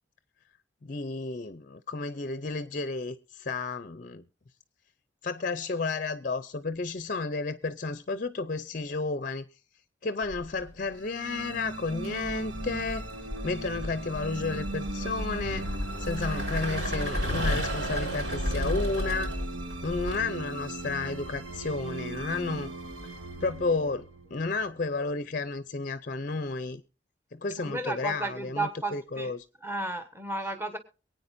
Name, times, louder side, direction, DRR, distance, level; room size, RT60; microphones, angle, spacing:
voice 1, 0.8-4.2 5.2-9.4 10.0-13.1 13.4-15.7 16.0-19.4 19.8-22.7 23.4-26.8 27.3-29.4, left 3 dB, 45° left, 0.5 m, -32 dB
sound 1, 10.3-10.8 11.9-20.2, equal, 60° right, 5.9 m, -33 dB
sound 2, 11.0-25.3, right 2 dB, 75° right, 1.5 m, -39 dB
voice 2, 27.6-29.3 29.6-30.8, right 2 dB, 10° right, 1.2 m, -33 dB
23.5 x 9.2 x 2.6 m
head